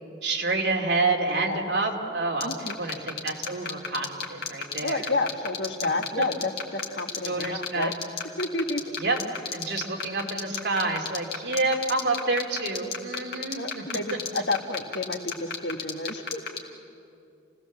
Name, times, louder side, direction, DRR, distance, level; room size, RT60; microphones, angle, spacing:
voice 1, 0.2-5.1 6.2-6.3 7.2-7.9 9.0-9.2 9.5-13.8, right 3 dB, 70° right, 1 dB, 2.8 m, -28 dB
voice 2, 1.4-1.7 2.4-2.7 4.8-7.9 8.4-8.8 13.6-16.4, left 2 dB, 75° left, 6 dB, 1.5 m, -30 dB
sound 1, 2.4-16.6, left 6 dB, 50° left, 2.3 m, -30 dB
28.5 x 18.0 x 7.4 m, 2.6 s
head